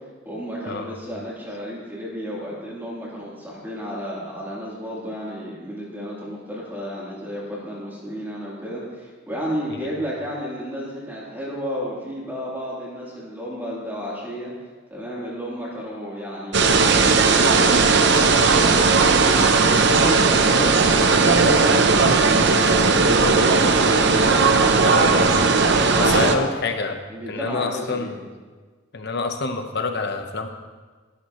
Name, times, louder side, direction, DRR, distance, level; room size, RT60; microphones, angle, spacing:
voice 1, 0.2-14.5 14.9-19.3 19.6-24.4 25.0-25.3 26.0-26.5 27.1-28.2, equal, 10° right, -7 dB, 3.4 m, -32 dB
sound 1, 16.5-26.4, right 4 dB, 55° right, 0.8 m, -17 dB
voice 2, 24.8-25.2 26.0-27.0 27.3-28.2 28.9-30.5, left 4 dB, 55° left, 6 dB, 1.0 m, -27 dB
14.5 x 11.5 x 3.1 m, 1.4 s
head